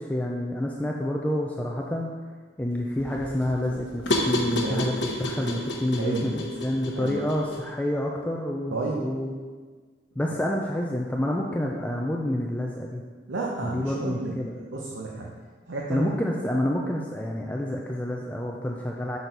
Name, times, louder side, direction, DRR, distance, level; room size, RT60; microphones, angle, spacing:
voice 1, 0.0-2.1 2.6-9.4 10.2-13.0 13.6-14.6 15.9-19.2, left 1 dB, 10° left, -1 dB, 0.4 m, -28 dB
sound 1, 2.7-7.7, left 1 dB, 75° left, 1.0 m, -31 dB
voice 2, 6.0-6.3 6.9-7.2 8.7-9.0 13.3-15.3 15.7-16.1, right 3 dB, 85° right, -3 dB, 0.8 m, -31 dB
6.1 x 4.2 x 5.2 m, 1.5 s
head